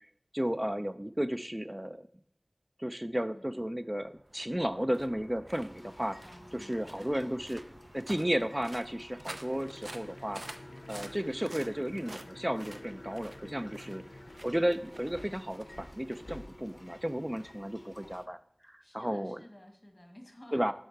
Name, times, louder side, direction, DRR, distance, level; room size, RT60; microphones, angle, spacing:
voice 1, 0.3-2.1 2.8-6.2 6.5-7.6 7.9-10.4 10.9-14.0 14.4-18.4 18.6-19.4 20.5-20.7, equal, 20° right, 12 dB, 0.4 m, -33 dB
voice 2, 3.3-3.7 6.2-7.8 13.6-14.0 18.8-20.7, left 1 dB, 25° left, 2 dB, 1.7 m, -53 dB
sound 1, 4.0-17.4, right 1 dB, 75° right, 0.6 m, -50 dB
sound 2, 5.5-18.3, left 1 dB, 50° left, 0.6 m, -53 dB
sound 3, 9.2-15.5, left 2 dB, 85° left, 0.4 m, -51 dB
6.7 x 5.4 x 4.7 m, 0.69 s
wide cardioid pair, 45°, 0 cm